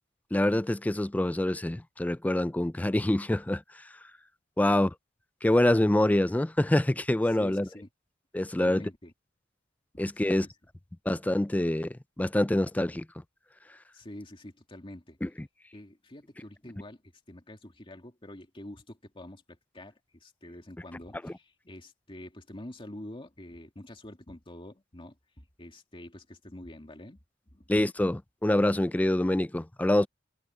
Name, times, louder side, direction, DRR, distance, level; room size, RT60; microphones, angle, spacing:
voice 1, 0.3-3.6 4.6-4.9 5.4-7.7 8.3-8.8 10.0-10.5 11.1-13.1 15.2-15.3 21.2-21.3 27.7-30.1, left 1 dB, 10° left, 0.4 m, -26 dB
voice 2, 7.3-7.9 8.6-9.1 9.9-10.5 13.9-15.2 15.7-17.0 17.3-27.2 27.5-27.6, left 1 dB, 25° left, 2.4 m, -46 dB
head